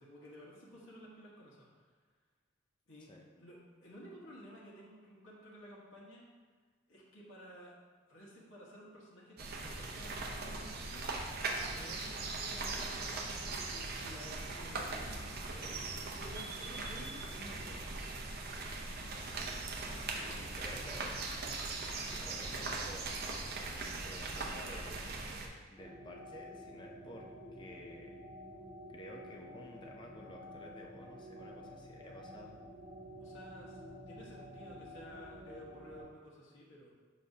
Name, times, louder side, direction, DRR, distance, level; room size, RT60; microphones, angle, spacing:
voice 1, 0.0-1.9 2.9-3.1 3.4-6.3 6.9-7.8 8.1-11.4 11.7-17.9 33.2-33.8 34.1-36.9, equal, 90° left, -5 dB, 1.4 m, -53 dB
sound 1, 9.4-25.5, right 3 dB, 55° right, 0.7 m, -40 dB
voice 2, 19.3-19.6 20.1-21.2 21.9-23.2 24.0-28.2 28.9-32.5, left 1 dB, 25° left, 1 dB, 0.5 m, -52 dB
sound 2, 25.8-36.0, equal, 20° right, 1.8 m, -50 dB
6.3 x 5.4 x 2.8 m, 1.5 s
head